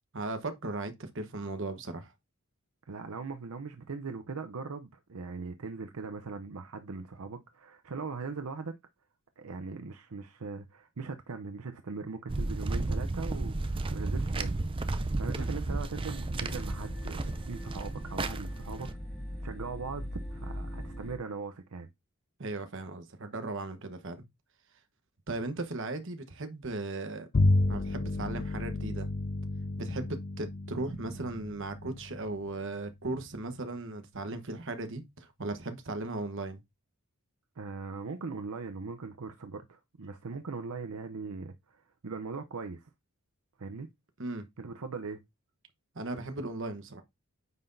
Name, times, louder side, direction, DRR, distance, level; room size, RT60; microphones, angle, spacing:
voice 1, 0.1-2.1 15.3-15.4 22.4-24.2 25.3-27.3 27.7-29.1 29.8-36.6 44.2-44.5 45.9-47.0, right 2 dB, 55° right, 1.1 m, -37 dB
voice 2, 2.9-8.7 9.4-14.6 15.1-18.9 19.4-21.9 37.6-42.9 43.6-43.9 44.6-45.2, right 4 dB, 75° right, 0.6 m, -40 dB
sound 1, 12.3-18.9, right 2 dB, 25° right, 0.4 m, -33 dB
sound 2, 15.9-21.2, equal, ahead, 2.2 m, -41 dB
Bowed string instrument, 27.3-33.0, left 2 dB, 40° left, 0.5 m, -31 dB
9.2 x 5.8 x 2.6 m
head